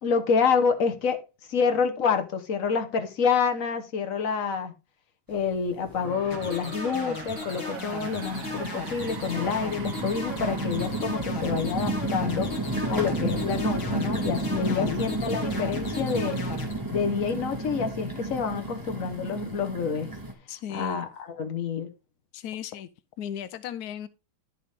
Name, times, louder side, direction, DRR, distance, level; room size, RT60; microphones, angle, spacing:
voice 1, 0.0-1.2 1.5-4.7 5.3-16.4 16.9-20.1 20.7-21.9, left 6 dB, 45° left, 1.3 m, -27 dB
sound 1, 5.3-5.4 5.8-6.5 7.1-20.3, right 2 dB, 10° right, 1.4 m, -32 dB
sound 2, 5.7-12.6, right 6 dB, 70° right, 1.9 m, -44 dB
sound 3, 6.3-16.7, left 4 dB, 70° left, 2.6 m, -37 dB
voice 2, 14.6-15.0 20.5-21.0 22.3-22.9 23.2-24.1, left 10 dB, 85° left, 0.8 m, -35 dB
11.0 x 6.5 x 3.4 m
omnidirectional pair, 2.3 m